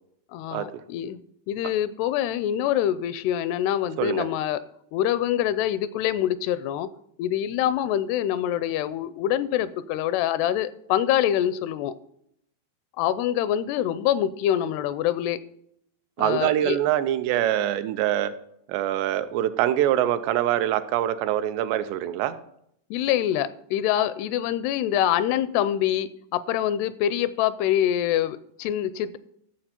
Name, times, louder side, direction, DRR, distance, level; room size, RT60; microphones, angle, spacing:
voice 1, 0.3-1.2 1.5-4.6 4.9-6.9 7.2-11.9 13.0-15.4 16.2-16.8 22.9-29.2, left 11 dB, 85° left, 16 dB, 2.5 m, -25 dB
voice 2, 16.2-18.3 18.7-22.4, right 12 dB, 90° right, 11 dB, 2.8 m, -24 dB
13.5 x 7.3 x 4.3 m, 0.72 s
omnidirectional pair, 4.8 m